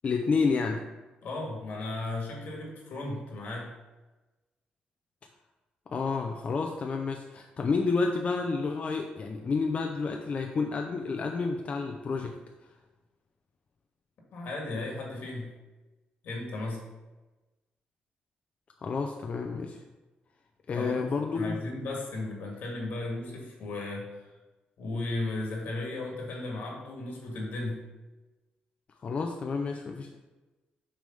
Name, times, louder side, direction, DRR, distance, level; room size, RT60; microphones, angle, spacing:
voice 1, 0.0-0.8 5.9-12.3 18.8-19.8 20.7-21.6 29.0-30.2, left 4 dB, 45° left, 3 dB, 0.5 m, -30 dB
voice 2, 1.2-3.7 14.3-15.5 16.2-16.9 20.7-21.1 21.3-24.3 24.8-27.8, left 2 dB, 75° left, -1 dB, 1.8 m, -35 dB
6.2 x 3.4 x 5.4 m, 1.1 s
cardioid pair, 100°, 3 cm